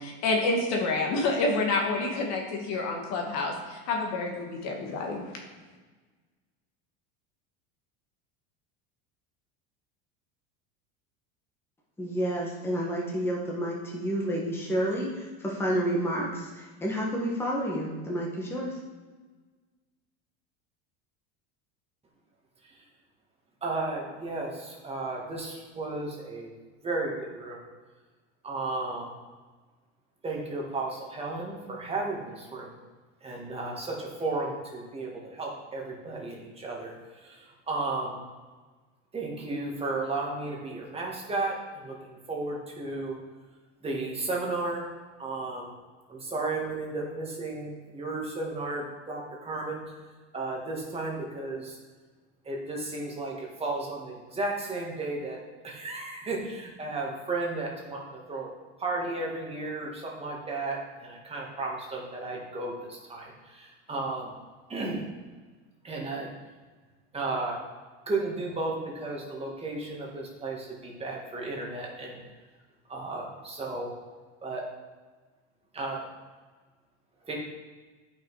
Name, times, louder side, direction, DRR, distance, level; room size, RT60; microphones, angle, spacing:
voice 1, 0.0-5.3, left 3 dB, 55° left, 1 dB, 1.9 m, -28 dB
voice 2, 12.0-18.8, equal, 5° left, -3 dB, 1.6 m, -30 dB
voice 3, 23.6-26.5 26.8-27.6 28.4-29.1 30.2-32.7 33.2-38.2 39.1-43.2 43.8-44.9 45.2-45.7 46.1-49.8 50.3-51.8 52.4-55.4 55.6-58.5 58.8-64.3 64.7-65.1 65.8-66.3 67.1-67.6 68.1-72.2 72.9-73.9 74.4-74.6 75.7-76.0 77.3-77.4, right 2 dB, 20° right, -2 dB, 1.9 m, -34 dB
10.5 x 5.8 x 4.8 m, 1.3 s
supercardioid pair, 135°, 32 cm